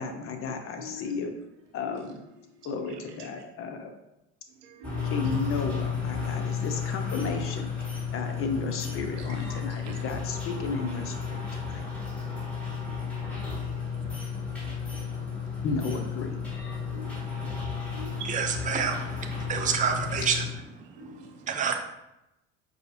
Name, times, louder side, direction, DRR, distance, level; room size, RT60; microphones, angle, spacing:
voice 1, 0.0-1.3 1.7-2.2 2.6-3.9 5.1-11.8 15.6-16.4, left 4 dB, 35° left, 6 dB, 0.4 m, -33 dB
voice 2, 0.8-1.1 1.9-2.0 4.6-5.1 9.5-10.0 16.9-17.1 17.9-18.4 21.0-21.3, right 1 dB, 70° right, 2 dB, 0.7 m, -43 dB
sound 1, 4.8-20.4, left 6 dB, 5° left, 1.5 m, -33 dB
voice 3, 18.2-20.4 21.5-21.8, right 6 dB, 20° right, 6 dB, 0.4 m, -28 dB
4.7 x 2.0 x 2.8 m, 0.89 s
hypercardioid pair, 65°, 39 cm